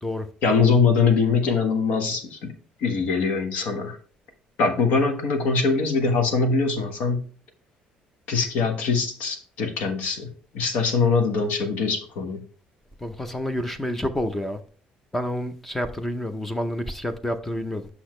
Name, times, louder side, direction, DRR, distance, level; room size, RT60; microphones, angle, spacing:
voice 1, 0.4-2.5 2.8-4.0 4.6-7.2 8.3-10.3 10.5-12.4, left 4 dB, 75° left, 1.3 m, -22 dB
voice 2, 13.0-14.6 15.1-17.9, left 1 dB, 10° left, 0.6 m, -29 dB
6.1 x 5.9 x 3.2 m
cardioid pair, 140°, 3 cm